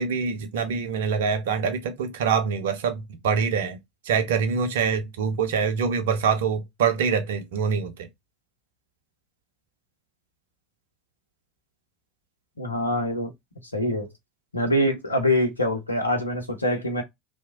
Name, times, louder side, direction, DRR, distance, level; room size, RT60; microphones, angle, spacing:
voice 1, 0.0-3.8 4.1-8.1, right 6 dB, 65° right, 0.5 m, -25 dB
voice 2, 12.6-13.3 13.7-14.1 14.5-17.0, left 1 dB, 85° left, 0.6 m, -24 dB
2.8 x 2.0 x 2.5 m
figure-of-eight pair, 70°, 0 cm